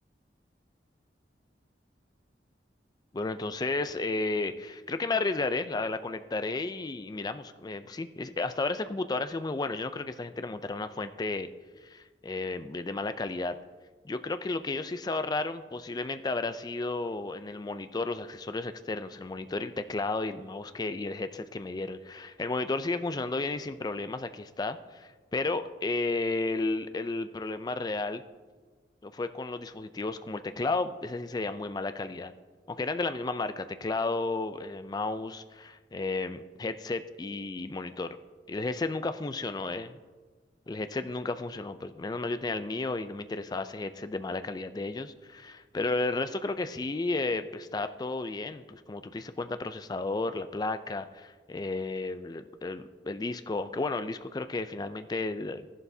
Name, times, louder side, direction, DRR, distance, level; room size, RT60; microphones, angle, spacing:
voice 1, 3.1-11.5 11.8-13.6 14.0-28.2 29.0-32.3 32.7-38.1 38.5-40.0 40.7-55.7, left 3 dB, 20° left, 10 dB, 0.3 m, -33 dB
13.5 x 11.0 x 2.7 m, 1.4 s
head